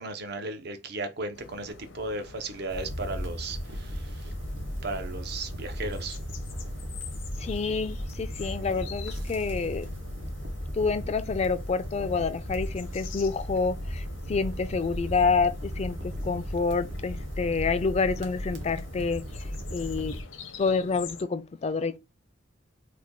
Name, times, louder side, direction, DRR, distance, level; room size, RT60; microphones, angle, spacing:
voice 1, 0.0-4.0 4.8-6.2, right 2 dB, 55° right, 0.6 m, -35 dB
sound 1, 1.3-21.2, left 5 dB, 80° left, 0.6 m, -47 dB
sound 2, 2.7-20.2, equal, 70° right, 1.0 m, -36 dB
voice 2, 7.4-9.9 10.7-20.2 20.6-22.0, left 4 dB, 35° left, 0.3 m, -28 dB
3.3 x 2.2 x 3.6 m
head